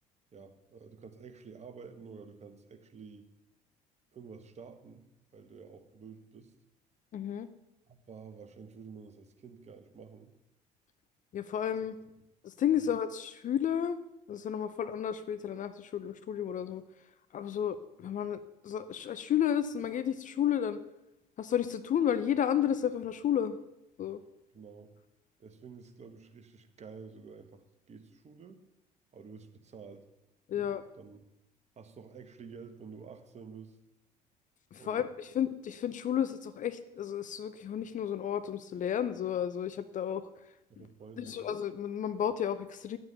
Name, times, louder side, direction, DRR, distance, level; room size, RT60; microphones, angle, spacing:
voice 1, 0.3-3.3 4.1-5.0 5.3-6.5 7.9-10.3 12.8-12.9 24.5-24.9 25.4-28.6 29.1-30.1 30.5-30.7 31.0-31.2 31.8-33.8 34.8-35.1 40.7-41.5, right 5 dB, 35° right, 8 dB, 1.4 m, -50 dB
voice 2, 7.1-7.5 11.3-11.9 12.4-14.0 14.3-16.8 17.3-20.8 21.4-23.6 24.0-24.2 30.5-30.8 34.7-40.3 40.8-40.9 41.2-43.0, left 9 dB, 40° left, 12 dB, 0.7 m, -32 dB
10.0 x 7.8 x 6.9 m, 0.87 s
figure-of-eight pair, 55°, 20 cm